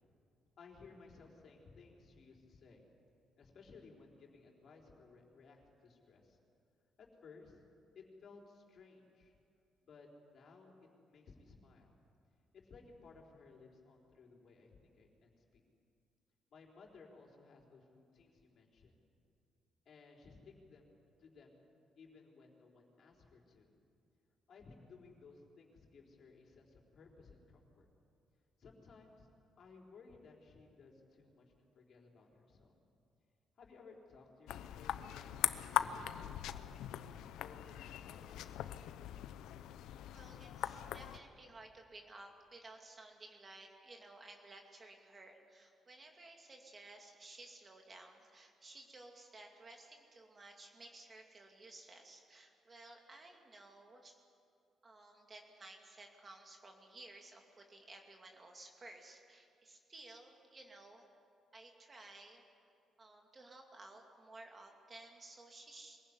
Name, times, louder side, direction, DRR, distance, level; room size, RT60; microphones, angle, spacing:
voice 1, 0.6-2.8 3.4-6.4 7.0-7.6 7.9-9.4 9.8-11.9 12.5-15.6 16.5-18.9 19.9-20.9 21.2-21.6 22.0-23.7 24.5-27.9 28.6-29.3 29.6-32.7 33.6-36.8 37.4-38.8, left 4 dB, 60° left, 0 dB, 4.2 m, -59 dB
sound 1, 34.5-41.2, left 11 dB, 85° left, 0.7 m, -40 dB
voice 2, 40.1-54.2 54.8-61.1 61.5-62.4 63.0-66.0, right 2 dB, 35° right, 2 dB, 2.5 m, -56 dB
23.0 x 15.5 x 9.8 m, 2.4 s
cardioid pair, 90°, 0 cm